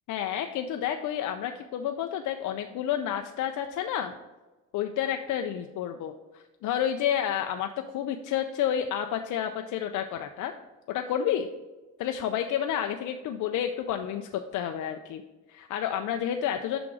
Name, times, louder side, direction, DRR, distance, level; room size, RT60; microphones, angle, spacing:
voice 1, 0.1-4.1 4.7-7.7 7.9-10.5 10.9-11.5 12.0-15.2 15.5-16.8, left 9 dB, 75° left, 6 dB, 0.5 m, -30 dB
5.9 x 3.7 x 6.0 m, 1.2 s
cardioid pair, 90°, 30 cm